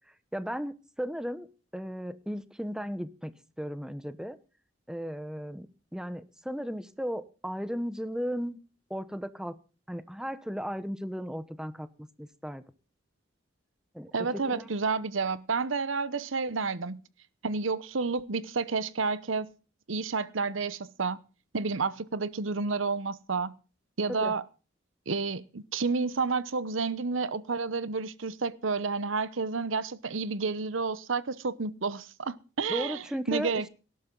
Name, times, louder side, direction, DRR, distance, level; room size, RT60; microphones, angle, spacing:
voice 1, 0.3-1.5 1.7-4.4 4.9-5.7 5.9-8.6 8.9-9.6 9.9-12.6 13.9-14.7 24.1-24.3 32.7-33.7, equal, 5° right, 0.9 m, -35 dB
voice 2, 14.1-17.0 17.4-19.5 19.9-21.2 21.5-23.5 24.0-24.4 25.1-33.7, right 4 dB, 85° right, 0.9 m, -30 dB
18.0 x 12.0 x 3.9 m
head